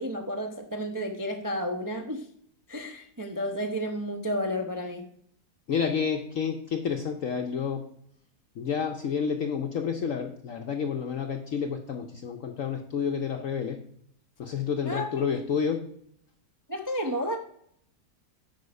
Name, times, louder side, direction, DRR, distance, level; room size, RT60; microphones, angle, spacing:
voice 1, 0.0-2.3 2.7-5.1 14.8-15.3 16.7-17.4, equal, 20° right, 4 dB, 0.6 m, -31 dB
voice 2, 5.7-7.8 8.6-13.8 14.4-15.9, left 6 dB, 60° left, 4 dB, 1.1 m, -29 dB
9.3 x 5.6 x 5.3 m, 0.66 s
omnidirectional pair, 1.8 m